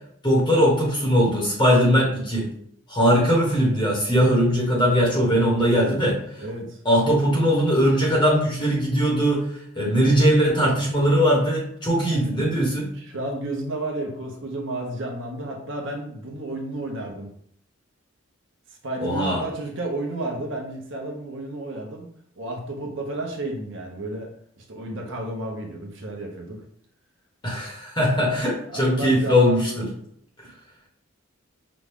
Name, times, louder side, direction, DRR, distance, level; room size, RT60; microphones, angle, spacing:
voice 1, 0.2-2.5 2.9-6.2 6.8-9.5 9.7-12.9 19.0-19.4 27.4-29.9, equal, 20° left, -4 dB, 1.4 m, -20 dB
voice 2, 6.4-6.8 12.0-12.4 12.9-17.3 18.7-22.1 22.4-24.3 24.6-26.6 28.7-29.8, right 2 dB, 65° right, 1 dB, 0.8 m, -32 dB
5.1 x 2.3 x 3.5 m, 0.66 s
head